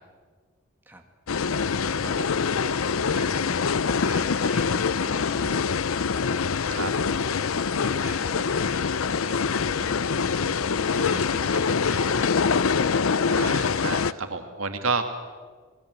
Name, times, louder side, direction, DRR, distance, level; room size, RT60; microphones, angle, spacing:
sound 1, 1.3-14.1, left 5 dB, 80° left, 0.6 m, -24 dB
voice 1, 1.5-2.0 2.6-5.9 6.2-12.4 12.7-13.4, right 1 dB, 10° right, 3 dB, 2.5 m, -44 dB
voice 2, 2.0-2.4 6.7-6.9 13.3-15.0, right 4 dB, 75° right, 6 dB, 2.5 m, -30 dB
26.5 x 19.5 x 8.1 m, 1.5 s
head